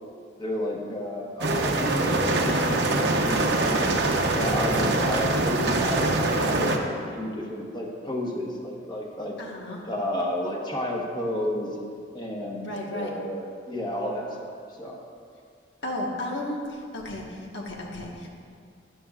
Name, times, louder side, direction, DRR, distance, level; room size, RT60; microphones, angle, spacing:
voice 1, 0.4-4.0 4.3-6.0 6.3-9.3 9.9-11.8 12.1-14.5 14.8-15.0, left 1 dB, 25° left, -2 dB, 1.1 m, -31 dB
sound 1, 1.4-6.8, right 2 dB, 60° right, 0.8 m, -24 dB
voice 2, 9.4-9.8 12.6-13.1 15.8-18.3, left 1 dB, 70° left, -1 dB, 1.4 m, -33 dB
12.0 x 9.8 x 2.4 m, 2.3 s
head